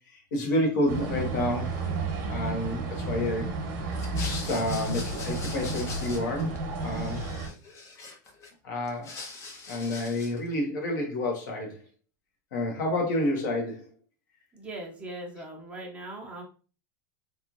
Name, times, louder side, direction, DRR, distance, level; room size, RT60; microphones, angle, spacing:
voice 1, 0.1-1.7 2.3-3.5 4.2-6.5 6.8-7.2 8.6-9.1 9.7-11.8 12.5-13.9, left 1 dB, 80° left, 1 dB, 1.2 m, -29 dB
sound 1, 0.9-7.5, right 2 dB, 55° right, 0.9 m, -32 dB
sound 2, 3.9-6.6 6.8-8.5 8.8-10.5, left 3 dB, 30° left, 0.7 m, -42 dB
voice 2, 14.5-16.4, right 1 dB, 15° right, -2 dB, 0.9 m, -40 dB
3.1 x 2.6 x 2.5 m, 0.36 s
supercardioid pair, 150°, 10 cm